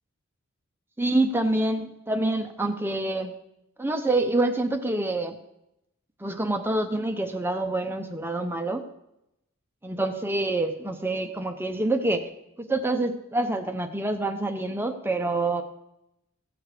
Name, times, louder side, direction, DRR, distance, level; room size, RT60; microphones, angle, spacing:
voice 1, 1.0-3.3 3.8-5.4 6.2-8.8 9.8-12.2 12.6-15.6, right 2 dB, 10° right, 6 dB, 0.6 m, -26 dB
15.5 x 6.5 x 4.8 m, 0.86 s
head